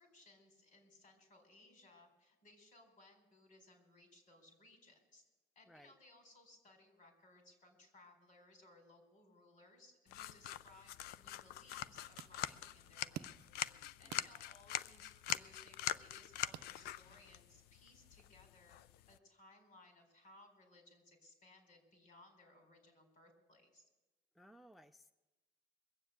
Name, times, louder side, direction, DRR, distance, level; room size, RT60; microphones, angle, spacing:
voice 1, 0.0-5.2 5.6-13.4 14.0-18.8 19.1-23.9, left 2 dB, 60° left, 4 dB, 4.2 m, -64 dB
sound 1, 10.1-19.2, left 13 dB, 85° left, 0.4 m, -44 dB
sound 2, 11.7-17.3, right 14 dB, 80° right, 0.5 m, -55 dB
voice 2, 24.3-25.1, equal, ahead, 11 dB, 0.4 m, -61 dB
21.5 x 7.5 x 8.1 m, 1.1 s
cardioid pair, 110°, 16 cm